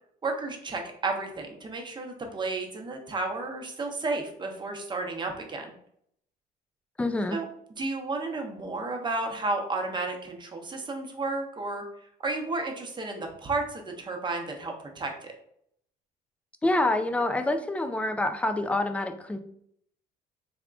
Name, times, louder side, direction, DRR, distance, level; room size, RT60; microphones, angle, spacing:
voice 1, 0.2-5.7 7.3-7.5 7.8-11.8 12.2-15.3, right 3 dB, 25° right, 3 dB, 0.7 m, -32 dB
voice 2, 7.0-7.4 16.6-19.4, left 2 dB, 10° left, 8 dB, 0.3 m, -26 dB
3.6 x 3.5 x 2.3 m, 0.69 s
cardioid pair, 110°, 17 cm